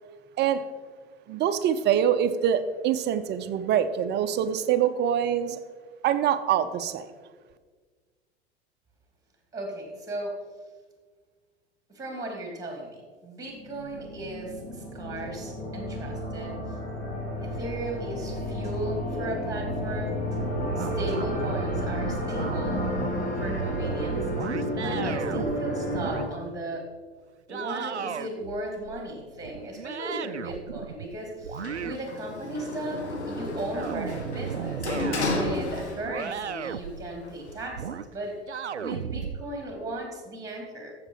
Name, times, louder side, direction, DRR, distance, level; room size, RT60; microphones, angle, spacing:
voice 1, 1.3-5.6 6.0-7.1, right 9 dB, 30° right, 11 dB, 0.7 m, -25 dB
voice 2, 9.5-10.4 11.9-16.8 17.4-20.2 20.8-22.9 23.4-26.9 27.5-34.9 35.3-38.4 38.8-40.9, right 1 dB, 10° right, 2 dB, 2.8 m, -36 dB
sound 1, 13.5-26.3, left 1 dB, 25° left, 2.8 m, -32 dB
sound 2, 20.4-25.6 25.9-26.3 27.5-31.1 31.4-32.6 33.5-35.4 36.0-37.1 37.8-38.1 38.5-39.4, right 7 dB, 85° right, 0.5 m, -34 dB
Sliding door, 31.6-36.4 36.7-37.7, left 2 dB, 80° left, 1.6 m, -33 dB
14.5 x 6.8 x 4.7 m, 1.5 s
figure-of-eight pair, 80°, 33 cm